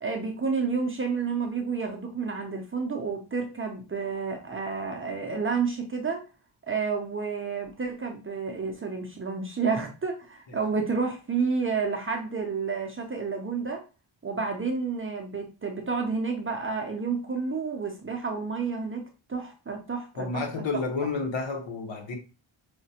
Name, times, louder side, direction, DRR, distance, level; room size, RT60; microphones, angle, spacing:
voice 1, 0.0-6.3 6.7-13.8 14.2-19.0 19.3-20.4, right 5 dB, 30° right, 0.4 m, -30 dB
voice 2, 20.2-22.2, left 4 dB, 70° left, 1.0 m, -30 dB
4.9 x 2.1 x 2.7 m
wide cardioid pair, 170°, 47 cm